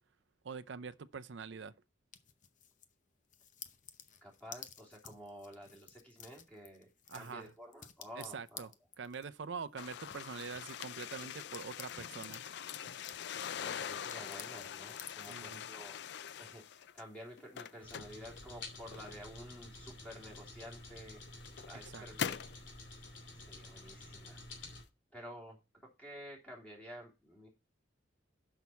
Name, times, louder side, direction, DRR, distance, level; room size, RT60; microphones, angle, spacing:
voice 1, 0.4-1.7 7.1-7.5 8.2-8.7 9.0-12.4 15.3-15.6 21.8-22.0, right 5 dB, 65° right, 0.5 m, -44 dB
sound 1, 2.1-2.9 3.3-12.5 12.8-15.6, left 8 dB, 40° left, 0.8 m, -53 dB
voice 2, 4.2-8.7 13.6-16.0 16.4-21.2 21.6-22.4 23.3-24.4 25.1-27.5, equal, 10° left, 3.1 m, -51 dB
sound 2, 9.8-17.0 17.4-19.4 20.3-20.4 21.1-22.6, left 8 dB, 60° left, 0.4 m, -43 dB
sound 3, 17.8-24.8, left 2 dB, 80° left, 2.9 m, -50 dB
6.3 x 5.7 x 6.9 m
head